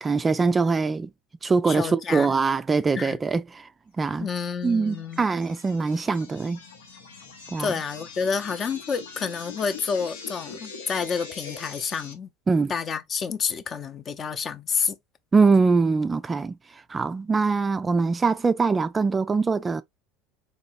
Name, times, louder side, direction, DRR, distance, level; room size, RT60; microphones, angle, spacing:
voice 1, 0.0-1.1 1.4-3.7 4.0-4.3 4.6-6.6 7.5-7.7 12.5-12.7 15.3-19.8, right 4 dB, 25° right, 0.3 m, -23 dB
voice 2, 1.7-2.3 2.9-3.2 4.2-5.2 7.6-12.3 12.7-15.0, left 6 dB, 40° left, 0.6 m, -29 dB
sound 1, 4.4-12.1, left 5 dB, 85° left, 0.8 m, -43 dB
3.9 x 3.0 x 2.5 m
hypercardioid pair, 75°, 0 cm